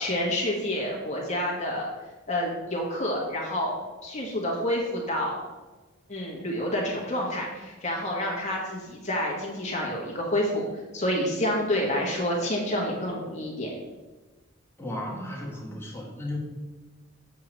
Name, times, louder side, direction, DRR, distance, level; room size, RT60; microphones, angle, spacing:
voice 1, 0.0-1.9 2.3-5.4 6.1-10.7 10.9-13.7, left 1 dB, 35° left, -2 dB, 1.3 m, -28 dB
voice 2, 14.8-16.4, left 1 dB, 10° left, -2 dB, 1.4 m, -34 dB
7.5 x 3.8 x 6.0 m, 1.2 s
head